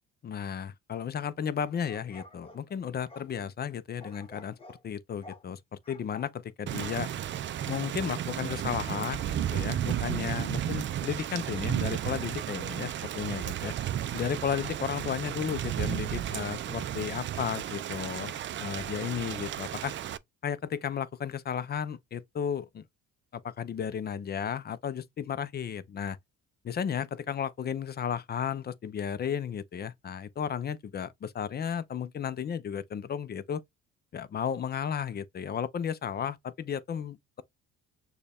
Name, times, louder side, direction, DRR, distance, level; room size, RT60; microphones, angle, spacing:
voice 1, 0.2-7.1 7.7-13.7 14.1-18.3 18.6-19.9 20.4-22.8 23.3-26.2 26.6-33.6 34.1-37.4, left 8 dB, 35° left, 0.5 m, -34 dB
sound 1, 1.6-3.3 4.0-4.8 5.2-5.5 5.8-6.3 6.9-7.1 7.7-7.9, left 2 dB, 20° left, 1.0 m, -50 dB
Thunder / Rain, 6.7-20.2, right 11 dB, 40° right, 0.4 m, -33 dB
6.4 x 2.3 x 3.4 m
cardioid pair, 115°, 29 cm